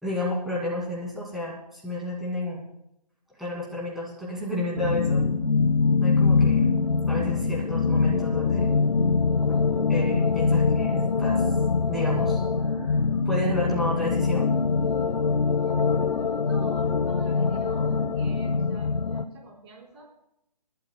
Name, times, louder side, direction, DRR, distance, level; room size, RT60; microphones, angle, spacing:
voice 1, 0.0-2.6 3.4-5.3 6.0-6.7 7.1-8.7 9.5-9.6 9.9-11.4 11.9-12.4 12.7-14.5, left 1 dB, ahead, -5 dB, 2.5 m, -31 dB
sound 1, 4.8-19.3, left 4 dB, 85° left, 0.8 m, -23 dB
voice 2, 15.6-20.0, right 2 dB, 40° right, -2 dB, 4.6 m, -48 dB
29.0 x 11.5 x 2.3 m, 0.82 s
hypercardioid pair, 155°, 21 cm